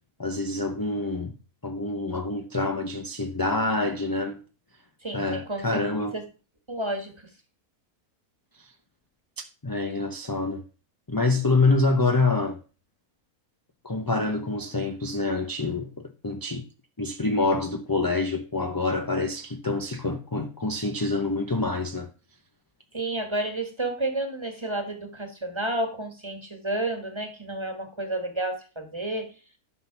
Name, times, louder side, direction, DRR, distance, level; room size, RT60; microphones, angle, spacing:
voice 1, 0.2-1.3 1.6-4.4 5.1-6.2 9.6-10.6 11.1-12.6 13.8-16.6 17.0-22.1, left 3 dB, 20° left, 0.7 m, -26 dB
voice 2, 5.0-6.2 6.7-7.3 22.9-29.3, right 1 dB, 20° right, 1.7 m, -31 dB
11.0 x 6.0 x 6.0 m
omnidirectional pair, 1.6 m